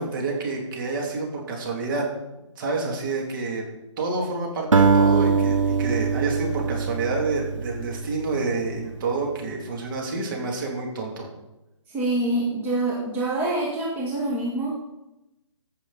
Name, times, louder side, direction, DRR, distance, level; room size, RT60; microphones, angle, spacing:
voice 1, 0.0-2.1 2.6-3.6 4.0-11.3, right 3 dB, 40° right, 0 dB, 2.9 m, -28 dB
Acoustic guitar, 4.7-9.2, right 5 dB, 80° right, 1.1 m, -23 dB
voice 2, 11.9-14.8, right 2 dB, 10° right, -5 dB, 1.7 m, -25 dB
15.0 x 6.7 x 4.1 m, 0.95 s
figure-of-eight pair, 145°, 16 cm